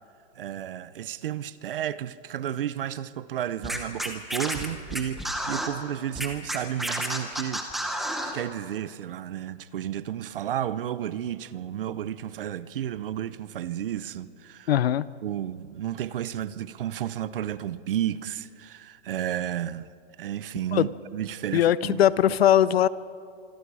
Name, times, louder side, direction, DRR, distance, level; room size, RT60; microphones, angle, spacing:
voice 1, 0.4-7.7 7.9-14.7 15.2-19.9 20.2-22.0, right 11 dB, 55° right, 0.8 m, -32 dB
Scratching (performance technique), 3.6-5.7 6.2-8.3, equal, ahead, 0.8 m, -30 dB
voice 2, 14.7-15.1 20.7-20.9 21.5-22.9, left 11 dB, 65° left, 0.7 m, -20 dB
25.5 x 25.0 x 4.9 m
hypercardioid pair, 175°, 33 cm